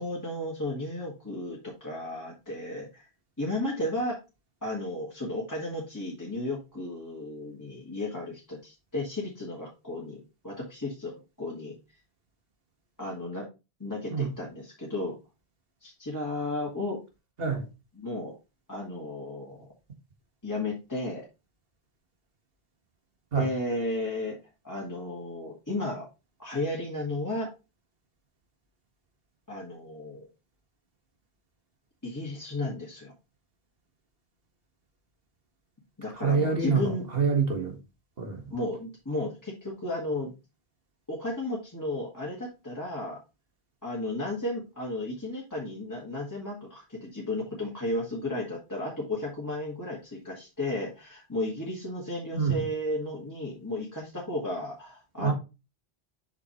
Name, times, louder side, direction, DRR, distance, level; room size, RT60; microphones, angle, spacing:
voice 1, 0.0-3.1 3.4-4.2 4.6-11.8 13.0-13.5 13.8-15.1 15.8-17.0 17.9-18.3 18.7-19.7 20.4-21.2 23.3-24.4 24.6-26.1 26.4-27.5 29.5-30.3 32.0-33.1 36.0-37.1 38.5-40.3 41.1-43.2 43.8-55.3, left 2 dB, 15° left, 1.8 m, -34 dB
voice 2, 36.2-36.9 37.1-37.8 38.2-38.4 52.3-52.6 55.2-55.3, right 5 dB, 65° right, 2.0 m, -25 dB
7.5 x 5.8 x 3.1 m
omnidirectional pair, 1.1 m